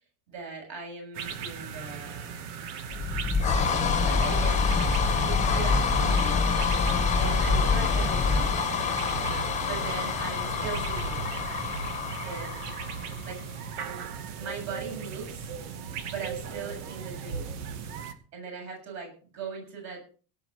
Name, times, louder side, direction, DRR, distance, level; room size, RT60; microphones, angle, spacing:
voice 1, 0.3-2.3 4.0-4.6 5.2-6.4 7.2-8.5 9.6-11.3 12.2-12.6 13.2-13.4 14.4-15.5 16.1-17.5 18.3-20.1, right 5 dB, 35° right, 1 dB, 7.4 m, -39 dB
sound 1, 1.1-18.1, right 6 dB, 65° right, 2.6 m, -38 dB
sound 2, 2.9-13.4, left 5 dB, 15° left, 1.8 m, -26 dB
17.5 x 6.1 x 8.5 m, 0.40 s
cardioid pair, 180°, 49 cm